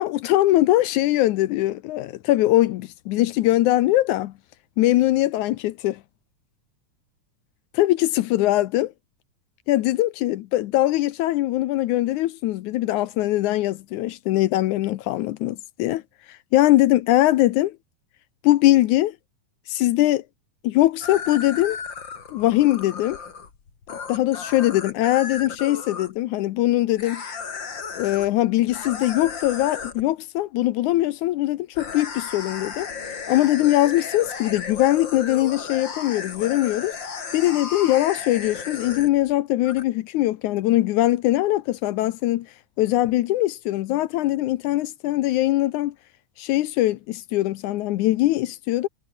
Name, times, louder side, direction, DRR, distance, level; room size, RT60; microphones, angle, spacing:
voice 1, 0.0-4.3 4.8-6.0 7.7-8.9 9.7-16.0 16.3-17.8 18.4-19.1 19.7-20.2 20.6-21.8 22.3-23.2 24.1-27.2 27.9-32.9 33.3-36.9 37.3-42.5 42.8-45.9 46.4-48.9, left 15 dB, 80° left, 2.1 m, -21 dB
sound 1, 21.0-26.1 27.0-28.3 28.7-30.0 31.7-39.3 39.6-39.8, left 5 dB, 40° left, 2.9 m, -34 dB
omnidirectional pair, 3.6 m